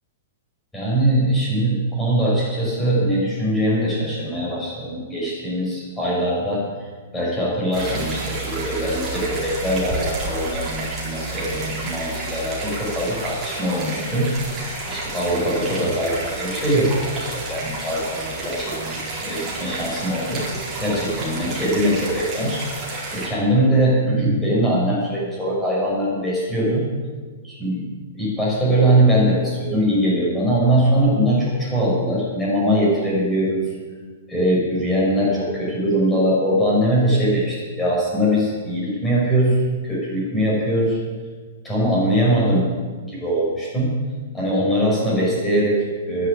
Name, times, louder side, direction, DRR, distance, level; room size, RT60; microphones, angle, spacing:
voice 1, 0.7-6.7 7.1-20.4 20.8-22.6 23.1-26.9 27.4-27.9 28.1-33.6 34.3-41.0 41.6-42.7 43.1-43.9 44.3-46.3, right 1 dB, 10° left, -6 dB, 6.2 m, -21 dB
sound 1, 7.7-23.3, right 2 dB, 15° right, 4.6 m, -30 dB
11.0 x 11.0 x 9.9 m, 1.5 s
hypercardioid pair, 160°, 0 cm